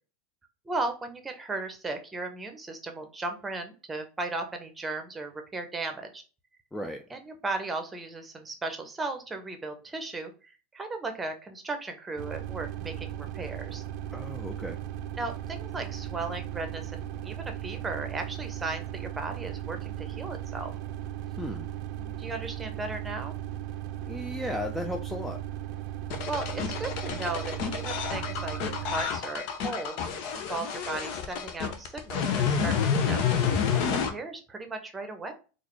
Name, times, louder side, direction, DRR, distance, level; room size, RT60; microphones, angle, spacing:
voice 1, 0.6-6.2 7.1-13.8 15.2-20.7 22.0-23.3 26.3-30.0 30.3-33.2 33.7-35.3, right 3 dB, 15° right, 6 dB, 0.9 m, -36 dB
voice 2, 6.7-7.0 14.1-14.8 21.4-21.7 24.1-25.4, left 1 dB, 5° left, 3 dB, 0.4 m, -35 dB
sound 1, 12.2-29.0, right 12 dB, 55° right, 0.4 m, -37 dB
sound 2, 26.1-34.1, left 6 dB, 60° left, 0.7 m, -29 dB
3.8 x 2.5 x 3.2 m, 0.34 s
hypercardioid pair, 90°, 0 cm